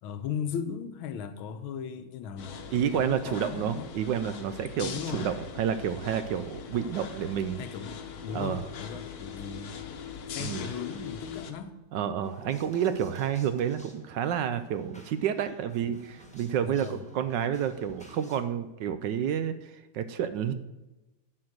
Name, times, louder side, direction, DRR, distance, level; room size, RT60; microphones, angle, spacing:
voice 1, 0.0-2.6 2.9-3.9 4.8-5.3 7.6-9.8 10.3-11.7 16.6-17.0, left 7 dB, 90° left, 1.6 m, -37 dB
sound 1, 2.4-11.5, left 7 dB, 55° left, 1.2 m, -41 dB
voice 2, 2.7-7.6 8.3-8.6 10.4-10.7 11.9-20.5, right 9 dB, 75° right, 1.1 m, -30 dB
sound 2, 12.2-18.4, equal, 5° left, 1.1 m, -53 dB
11.5 x 4.4 x 7.8 m
omnidirectional pair, 2.2 m